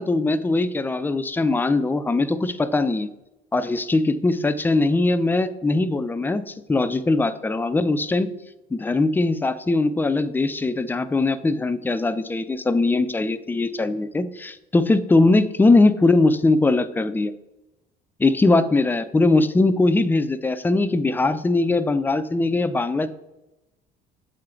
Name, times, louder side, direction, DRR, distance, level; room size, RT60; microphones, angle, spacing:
voice 1, 0.0-3.1 3.5-8.3 8.7-17.3 18.2-23.1, left 2 dB, 10° left, 12 dB, 0.4 m, -21 dB
7.5 x 3.8 x 4.3 m, 0.98 s
cardioid pair, 110°, 19 cm